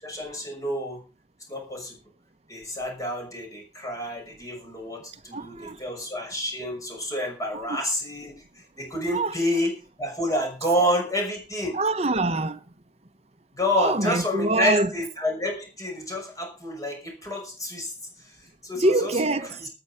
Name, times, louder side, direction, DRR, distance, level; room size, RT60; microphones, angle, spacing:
voice 1, 0.0-1.0 1.5-2.0 2.5-8.4 8.8-11.8 13.5-17.9 18.2-18.4 18.6-19.1, left 1 dB, 20° left, 6.1 m, -29 dB
voice 2, 5.3-5.8 7.5-7.8 9.1-9.3 11.7-12.6 13.8-14.9 18.7-19.7, right 2 dB, 35° right, 1.0 m, -25 dB
19.0 x 7.9 x 5.8 m
head